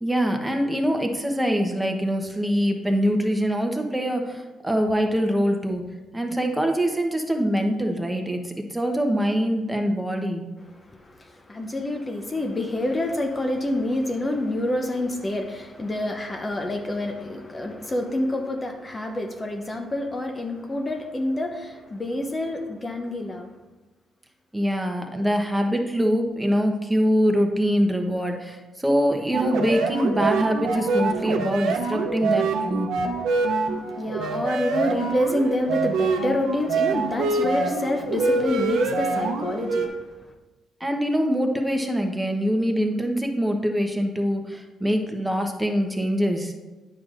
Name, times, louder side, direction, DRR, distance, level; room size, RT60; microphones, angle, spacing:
voice 1, 0.0-5.8 6.1-10.4 24.5-32.9 40.8-46.5, equal, 5° right, 1.0 m, -24 dB
voice 2, 10.8-23.5 33.6-40.0, left 1 dB, 25° left, 0.7 m, -27 dB
sound 1, 29.3-39.9, right 4 dB, 85° right, 0.7 m, -25 dB
9.0 x 6.5 x 2.5 m
cardioid pair, 90°, 0 cm